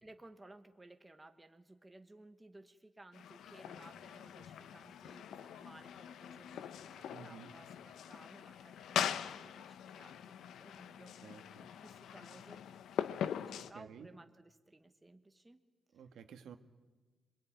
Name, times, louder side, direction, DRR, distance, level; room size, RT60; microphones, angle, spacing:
voice 1, 0.0-9.1 9.4-11.1 11.8-12.6 13.4-15.6, right 2 dB, 10° right, 7 dB, 1.2 m, -58 dB
sound 1, 3.1-13.7, left 9 dB, 85° left, 1.0 m, -42 dB
voice 2, 7.1-7.5 11.2-11.7 13.6-14.1 15.9-16.6, right 7 dB, 75° right, 8 dB, 1.7 m, -53 dB
26.5 x 22.0 x 9.3 m, 1.3 s
cardioid pair, 150°, 0 cm